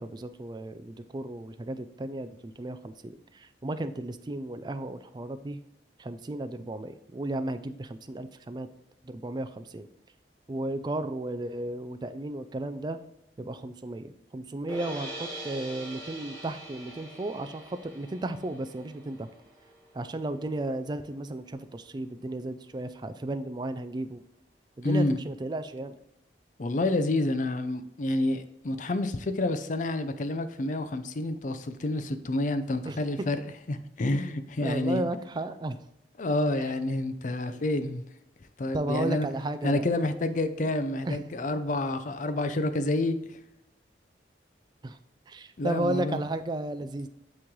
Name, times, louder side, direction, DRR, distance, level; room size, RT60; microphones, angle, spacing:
voice 1, 0.0-5.6 6.0-8.7 9.0-9.9 10.5-13.0 13.4-19.3 19.9-24.2 24.8-26.0 32.8-33.0 34.6-35.8 38.7-39.8 41.1-41.2 44.8-45.0 45.3-47.1, right 2 dB, 25° right, 10 dB, 0.3 m, -34 dB
sound 1, 14.7-20.8, right 1 dB, 5° left, 1.6 m, -43 dB
voice 2, 24.8-25.2 26.6-33.4 33.7-35.0 36.2-38.0 38.6-39.3 39.6-43.4 45.6-46.2, left 2 dB, 45° left, 10 dB, 0.5 m, -28 dB
8.6 x 3.2 x 3.7 m, 0.84 s
head